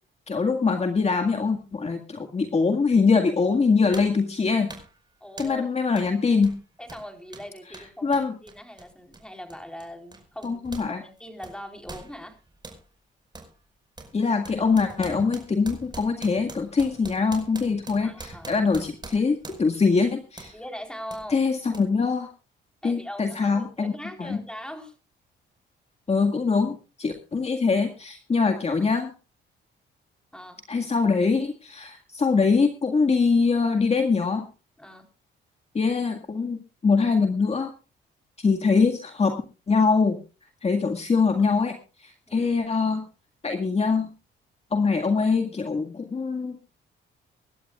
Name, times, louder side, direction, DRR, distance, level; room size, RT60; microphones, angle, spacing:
voice 1, 0.3-4.7 5.4-6.5 8.0-8.4 10.4-11.0 14.1-20.5 21.3-22.3 22.8-23.9 24.2-24.4 26.1-29.1 30.7-34.5 35.7-37.7 38.4-39.3 39.7-40.2 40.6-43.1 43.4-44.1 44.7-46.6, left 4 dB, 30° left, 5 dB, 1.9 m, -23 dB
sound 1, 3.1-3.2 3.9-4.2 4.7-5.0 5.4-5.6 6.0-6.1 6.4-10.9 11.2-12.8 13.3-13.5 14.0-19.8 20.4-20.6 21.1-21.2 21.7-21.8, right 2 dB, 20° right, 5.3 m, -43 dB
voice 2, 5.2-5.7 6.8-10.6 11.0-12.4 18.0-18.6 20.5-21.4 22.8-24.9 30.3-30.6 34.8-35.1 42.3-42.5, equal, 5° left, 4 dB, 4.1 m, -41 dB
24.5 x 12.0 x 2.4 m, 0.33 s
cardioid pair, 90°, 20 cm